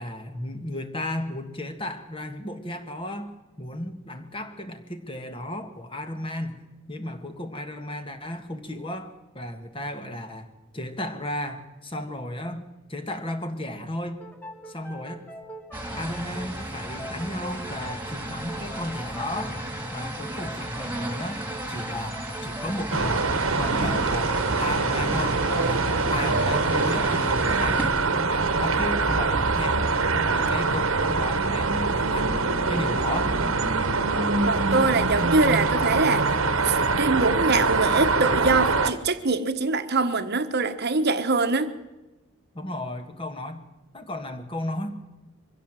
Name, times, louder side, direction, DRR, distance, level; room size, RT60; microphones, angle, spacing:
voice 1, 0.0-3.3 3.6-6.6 6.9-10.5 10.7-14.2 14.7-15.2 16.0-19.6 19.9-23.2 23.5-27.9 28.1-29.9 30.1-33.4 42.5-43.6 43.9-44.9, left 1 dB, 25° left, 1.8 m, -34 dB
sound 1, 14.2-29.5, equal, 5° left, 1.6 m, -44 dB
sound 2, 15.7-27.9, right 1 dB, 10° right, 2.6 m, -35 dB
sound 3, 22.9-38.9, right 3 dB, 65° right, 1.4 m, -24 dB
voice 2, 34.5-36.3 36.6-41.7, right 3 dB, 45° right, 1.3 m, -24 dB
23.5 x 16.0 x 7.6 m
head